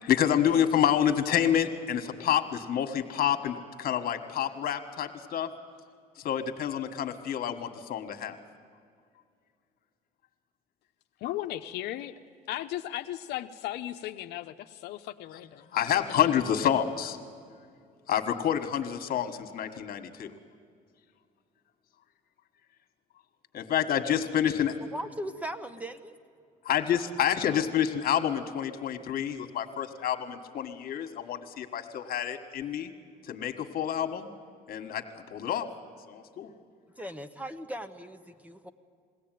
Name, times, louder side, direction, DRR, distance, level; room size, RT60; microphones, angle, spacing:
voice 1, 0.0-5.5 6.2-8.4 15.7-17.2 18.1-20.3 23.5-24.7 26.7-32.9 33.3-34.3 34.7-35.7 36.1-36.5, left 9 dB, 60° left, 7 dB, 1.7 m, -28 dB
voice 2, 11.2-12.1 12.5-16.5, left 13 dB, 80° left, 7 dB, 0.7 m, -37 dB
voice 3, 24.9-26.1 37.0-38.7, right 1 dB, 10° right, 10 dB, 1.0 m, -38 dB
21.5 x 16.5 x 9.2 m, 2.3 s
cardioid pair, 110°, 17 cm